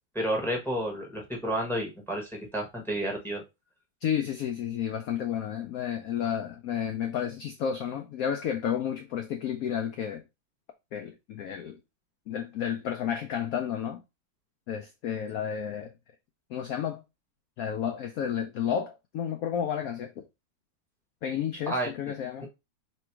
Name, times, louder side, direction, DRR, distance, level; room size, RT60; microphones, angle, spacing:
voice 1, 0.1-3.4 21.7-21.9 22.4-22.5, right 1 dB, ahead, 0.9 m, -31 dB
voice 2, 4.0-10.2 10.9-11.8 12.3-14.0 14.7-15.9 16.5-17.0 17.6-20.2 21.2-22.5, left 8 dB, 90° left, 0.7 m, -31 dB
3.3 x 3.0 x 4.4 m
omnidirectional pair, 2.1 m